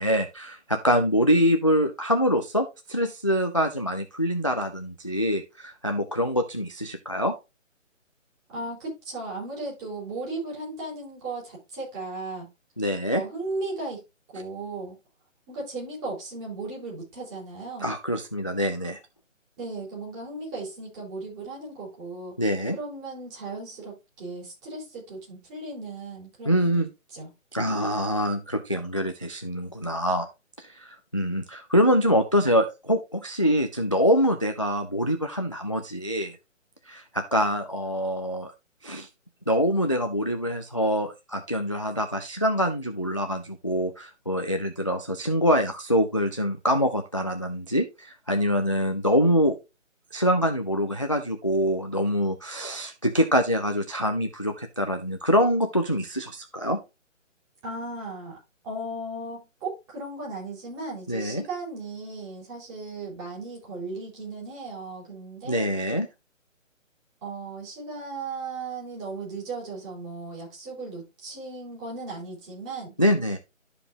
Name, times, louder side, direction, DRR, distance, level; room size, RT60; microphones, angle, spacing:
voice 1, 0.0-7.3 12.8-13.2 17.8-19.0 22.4-22.8 26.5-26.9 27.5-30.3 30.6-36.3 36.9-38.5 38.8-39.1 39.5-49.6 50.1-56.8 61.1-61.4 65.4-66.1 73.0-73.4, equal, 25° left, 7 dB, 0.4 m, -25 dB
voice 2, 8.5-12.5 13.1-14.0 14.3-15.0 15.5-17.9 19.6-22.4 22.7-27.3 57.6-58.4 58.6-65.7 67.2-73.0, right 3 dB, 20° right, -4 dB, 5.1 m, -36 dB
12.5 x 4.9 x 2.8 m, 0.25 s
figure-of-eight pair, 150°, 39 cm